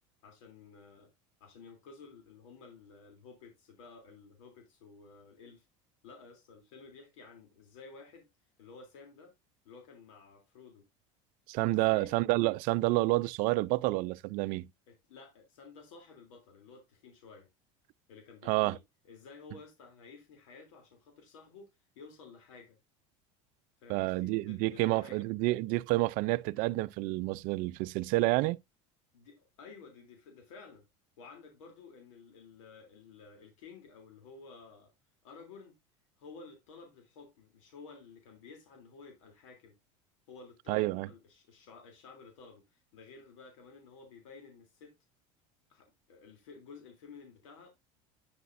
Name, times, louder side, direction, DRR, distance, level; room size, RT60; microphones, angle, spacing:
voice 1, 0.2-1.1 1.4-5.6 6.0-8.3 8.6-9.3 9.6-10.8 11.5-12.1 14.9-17.5 18.1-18.8 19.1-21.7 21.9-22.8 23.8-25.3 29.1-30.8 31.2-34.9 35.2-35.8 36.2-39.8 40.3-44.9 45.7-47.7, left 4 dB, 85° left, 3.3 m, -53 dB
voice 2, 11.5-14.7 18.5-18.8 23.9-28.6 40.7-41.1, right 20 dB, 65° right, 0.6 m, -29 dB
9.6 x 8.0 x 2.6 m
supercardioid pair, 105°, 16 cm